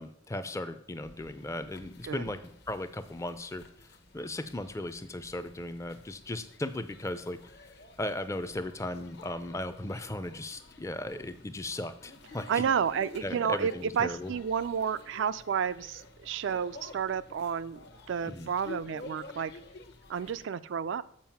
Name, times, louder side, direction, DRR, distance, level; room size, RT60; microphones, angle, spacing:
voice 1, 0.0-2.4 2.7-3.9 4.1-7.4 8.0-12.6 13.2-14.3 18.3-18.5, left 1 dB, 15° left, 11 dB, 0.4 m, -37 dB
sound 1, 1.0-20.5, left 2 dB, 55° left, 0.9 m, -51 dB
voice 2, 12.5-17.8 18.1-19.5 20.1-21.0, right 7 dB, 65° right, 14 dB, 0.3 m, -31 dB
7.5 x 4.7 x 5.7 m, 0.69 s
head